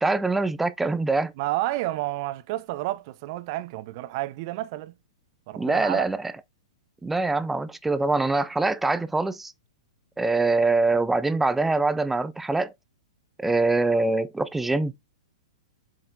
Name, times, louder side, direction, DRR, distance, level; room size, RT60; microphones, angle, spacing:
voice 1, 0.0-1.3 5.6-6.2 7.0-9.5 10.2-12.7 13.4-14.9, right 3 dB, 5° right, 0.5 m, -24 dB
voice 2, 1.4-4.9 5.5-6.0, right 16 dB, 45° right, 0.8 m, -30 dB
7.6 x 5.7 x 2.7 m
hypercardioid pair, 115°, 3 cm